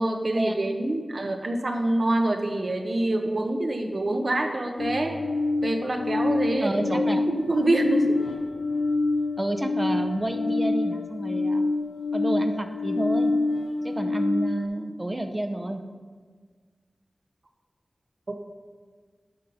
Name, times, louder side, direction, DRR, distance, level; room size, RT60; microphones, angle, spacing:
voice 1, 0.0-5.2 5.6-8.3, right 1 dB, 60° right, 4 dB, 1.0 m, -26 dB
sound 1, 4.8-14.6, left 3 dB, 85° left, 0.9 m, -26 dB
voice 2, 6.6-7.2 9.4-11.6 12.1-13.3 13.8-15.8, right 1 dB, 25° right, 6 dB, 0.7 m, -30 dB
11.5 x 4.2 x 5.4 m, 1.5 s
wide cardioid pair, 55°, 0 cm